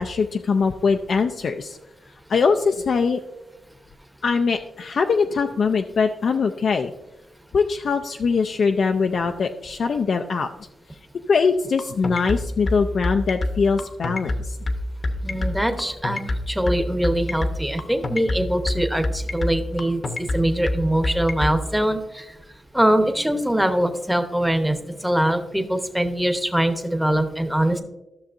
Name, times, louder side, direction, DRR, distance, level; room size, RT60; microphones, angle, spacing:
voice 1, 0.0-1.8 2.3-3.2 4.2-6.9 7.5-10.7 11.3-14.6, left 5 dB, 60° left, 5 dB, 0.4 m, -22 dB
sound 1, 11.8-21.6, left 2 dB, 45° left, 0.8 m, -25 dB
voice 2, 15.2-16.2 16.5-22.2 22.7-24.8 25.0-27.8, right 1 dB, 5° right, 6 dB, 0.9 m, -22 dB
13.5 x 6.4 x 2.5 m, 0.98 s
cardioid pair, 95°, 0 cm